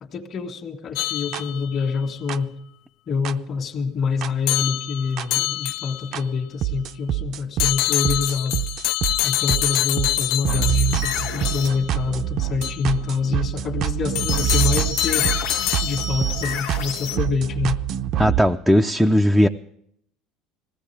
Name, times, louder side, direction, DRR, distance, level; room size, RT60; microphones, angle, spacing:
voice 1, 0.0-2.5 3.1-8.6 9.2-15.3 15.8-17.8, left 5 dB, 35° left, 1 dB, 1.6 m, -26 dB
sound 1, 1.0-1.9 4.5-6.2 7.6-11.9 12.6-12.8 14.2-16.3, left 14 dB, 65° left, 0.4 m, -25 dB
sound 2, 1.3-1.4 2.3-2.4 3.3-3.4 4.2-4.3 5.2-5.3 6.1-6.2 6.6-18.4, right 12 dB, 45° right, 0.5 m, -26 dB
sound 3, 10.9-11.7 14.3-17.2, left 6 dB, 85° left, 1.8 m, -31 dB
voice 2, 18.2-19.5, equal, ahead, 5 dB, 0.5 m, -17 dB
20.0 x 15.5 x 3.4 m, 0.71 s
cardioid pair, 145°, 0 cm